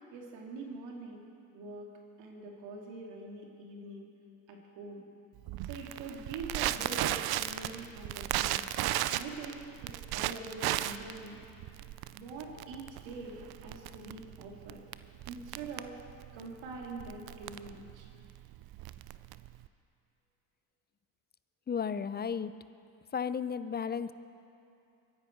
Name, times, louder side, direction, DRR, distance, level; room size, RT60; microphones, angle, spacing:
voice 1, 0.1-1.2 1.5-1.9 2.2-4.1 4.5-5.0 5.6-8.6 9.1-11.4 12.1-14.8 15.3-16.0 16.3-18.1, right 3 dB, 70° right, 0 dB, 2.8 m, -44 dB
Crackle, 5.5-19.7, right 14 dB, 55° right, 0.6 m, -36 dB
voice 2, 21.7-22.5 23.1-24.1, left 6 dB, 20° left, 14 dB, 0.5 m, -33 dB
23.5 x 10.5 x 4.6 m, 2.7 s
hypercardioid pair, 65°, 46 cm